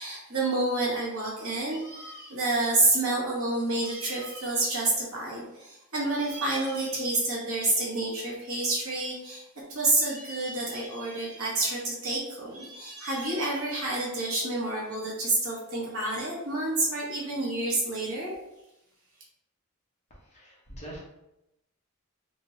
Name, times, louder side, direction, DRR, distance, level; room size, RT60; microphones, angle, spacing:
voice 1, 0.0-9.4 9.7-18.3, right 2 dB, 70° right, -4 dB, 0.9 m, -29 dB
voice 2, 20.1-21.0, right 1 dB, 30° left, -4 dB, 0.8 m, -44 dB
2.8 x 2.1 x 2.9 m, 0.89 s
head